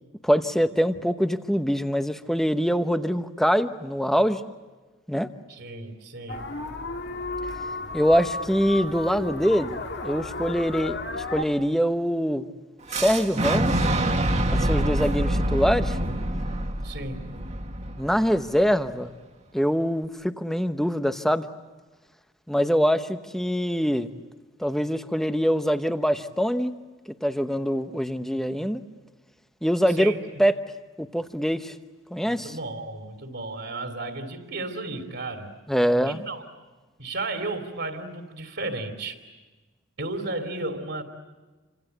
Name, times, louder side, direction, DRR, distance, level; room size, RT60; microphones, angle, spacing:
voice 1, 0.2-4.4 5.1-5.3 7.9-12.5 12.9-13.9 14.5-16.0 18.0-19.1 19.5-21.5 22.5-24.1 24.6-26.7 27.1-28.8 29.6-30.1 30.4-30.5 31.0-31.8 32.1-32.6 35.7-36.2, equal, ahead, 9 dB, 0.9 m, -24 dB
voice 2, 5.5-6.5 16.8-17.2 29.9-30.2 32.2-35.5 36.0-36.4 37.0-39.2 40.0-41.0, right 2 dB, 55° right, 4 dB, 2.9 m, -33 dB
sound 1, 6.3-11.5, left 2 dB, 50° left, 1.9 m, -33 dB
Fire / Explosion, 12.9-18.8, right 1 dB, 30° right, 1.8 m, -26 dB
28.5 x 26.5 x 7.9 m, 1.3 s
head